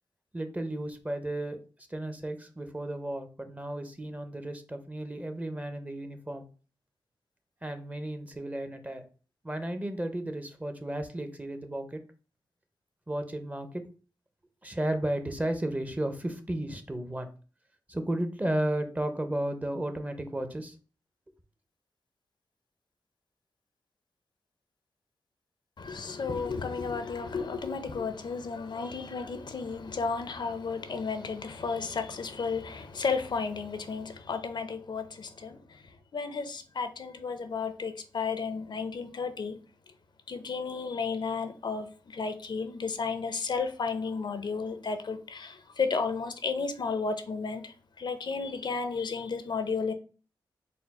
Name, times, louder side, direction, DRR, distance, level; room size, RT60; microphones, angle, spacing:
voice 1, 0.3-1.6 1.9-6.5 7.6-9.0 9.4-12.0 13.1-13.9 14.6-17.3 17.9-20.8, right 1 dB, 15° right, 0.6 m, -33 dB
voice 2, 25.8-35.8 36.1-39.6 40.3-49.9, left 5 dB, 60° left, 0.5 m, -33 dB
4.2 x 2.1 x 4.1 m
cardioid pair, 65°, 9 cm